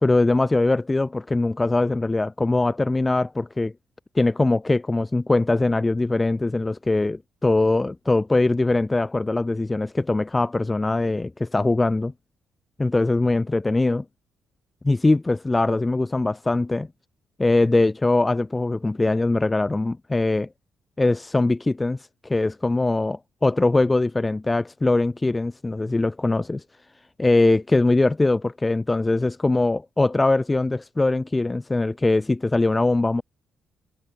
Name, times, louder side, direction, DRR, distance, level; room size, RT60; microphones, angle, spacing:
voice 1, 0.0-3.7 4.1-12.1 12.8-14.0 14.8-16.9 17.4-20.5 21.0-26.6 27.2-33.2, left 2 dB, 20° left, 2.6 m, -22 dB
cardioid pair, 90°, 0 cm